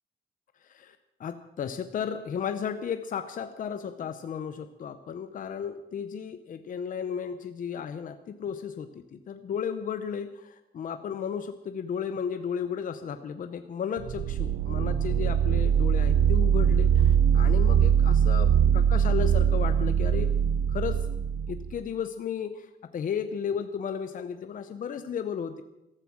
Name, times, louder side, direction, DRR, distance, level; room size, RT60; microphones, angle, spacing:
voice 1, 0.6-20.3 20.7-21.1 21.5-25.6, left 7 dB, 50° left, 9 dB, 0.7 m, -34 dB
sound 1, 14.0-21.8, right 8 dB, 65° right, 0.5 m, -22 dB
14.5 x 13.5 x 6.1 m, 0.91 s
wide cardioid pair, 175°, 17 cm